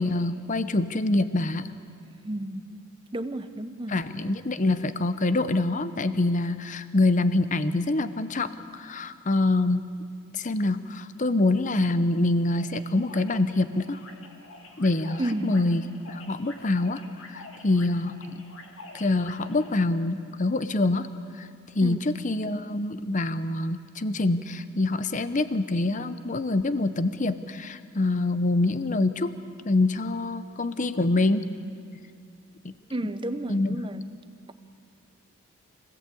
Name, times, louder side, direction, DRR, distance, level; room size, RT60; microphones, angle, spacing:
voice 1, 0.0-1.7 3.9-9.9 10.3-14.0 14.8-17.0 17.3-18.4 18.9-21.1 21.4-21.5 21.8-29.3 29.6-31.5 32.6-32.7 33.5-34.0, left 2 dB, 35° left, 12 dB, 0.7 m, -25 dB
voice 2, 2.2-2.7 3.1-4.0 15.2-15.6 21.8-22.0 32.9-34.1, right 1 dB, 25° right, 9 dB, 0.9 m, -32 dB
sound 1, 12.6-19.7, left 2 dB, 65° left, 2.1 m, -47 dB
25.0 x 16.5 x 8.4 m, 2.3 s
head